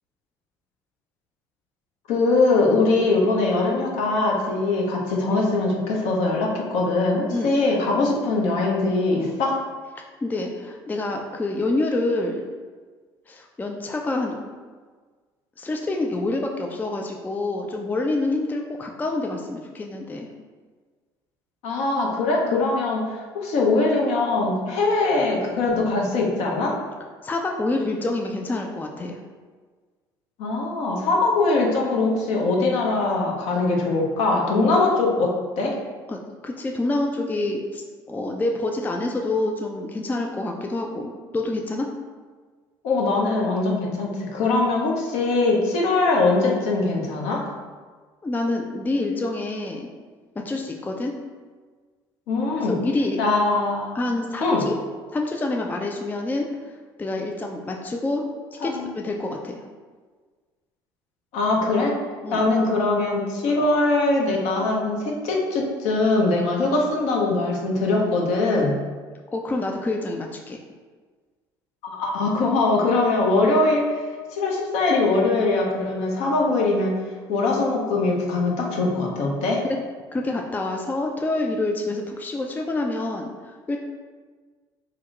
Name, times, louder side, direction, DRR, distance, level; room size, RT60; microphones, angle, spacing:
voice 1, 2.1-9.6 21.6-26.8 30.4-35.7 42.8-47.4 52.3-52.8 53.2-54.0 54.4-54.6 58.6-58.9 61.3-62.0 62.3-68.8 71.8-74.0 74.3-76.9 77.3-79.6, left 3 dB, 65° left, -1 dB, 0.7 m, -22 dB
voice 2, 10.2-12.5 13.3-14.4 15.6-20.3 27.2-29.2 36.1-37.8 38.1-41.9 48.2-49.9 50.4-51.1 52.7-53.2 53.9-54.7 55.1-56.5 57.0-58.3 58.6-59.6 62.2-62.4 66.6-66.7 69.3-70.6 80.1-83.8, left 2 dB, 15° left, 2 dB, 0.3 m, -27 dB
2.9 x 2.1 x 3.7 m, 1.5 s
hypercardioid pair, 60°, 13 cm